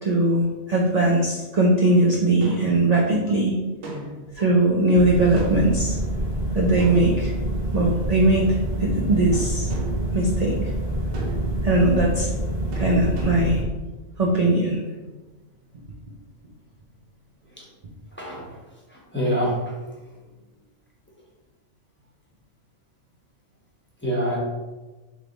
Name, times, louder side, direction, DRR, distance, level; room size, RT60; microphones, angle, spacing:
voice 1, 0.0-3.5 4.4-6.0 6.5-7.3 7.7-8.5 8.8-9.7 10.1-10.5 11.6-12.3 12.8-13.6 14.2-14.8, right 2 dB, 50° right, -3 dB, 0.4 m, -20 dB
sound 1, 2.4-2.8 3.8-4.3 5.4-5.8 6.8-7.6 9.3-10.1 11.1-11.7 12.7-13.7, right 4 dB, 90° right, 1.2 m, -33 dB
sound 2, 5.0-13.6, right 1 dB, 15° right, 1.3 m, -27 dB
voice 2, 18.9-19.6 24.0-24.4, equal, 10° left, -5 dB, 0.9 m, -25 dB
3.4 x 3.3 x 3.8 m, 1.2 s
omnidirectional pair, 1.3 m